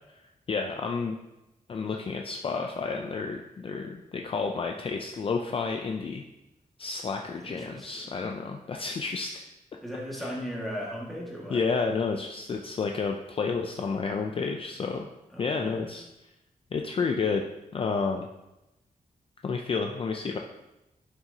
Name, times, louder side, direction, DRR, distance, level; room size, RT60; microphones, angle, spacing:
voice 1, 0.5-1.2 1.7-6.2 6.8-9.4 10.1-10.4 11.5-15.1 15.4-16.0 16.7-17.4 17.7-18.3 19.4-20.4, left 4 dB, 40° left, 3 dB, 0.4 m, -30 dB
voice 2, 7.4-8.3 9.8-11.6 15.3-15.9, equal, ahead, -4 dB, 1.8 m, -37 dB
11.0 x 5.9 x 2.8 m, 0.96 s
wide cardioid pair, 165°, 15 cm